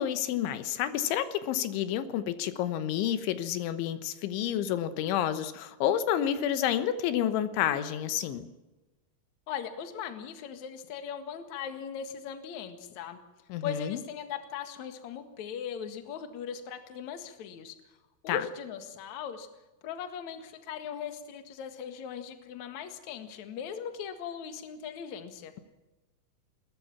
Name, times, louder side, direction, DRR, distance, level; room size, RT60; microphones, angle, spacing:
voice 1, 0.0-8.5 13.5-14.0 18.3-18.5, left 10 dB, 85° left, 12 dB, 3.6 m, -29 dB
voice 2, 9.5-13.2 13.6-17.8 18.2-19.5 19.8-25.5, left 8 dB, 55° left, 8 dB, 2.4 m, -39 dB
21.0 x 20.0 x 7.2 m, 1.1 s
omnidirectional pair, 5.3 m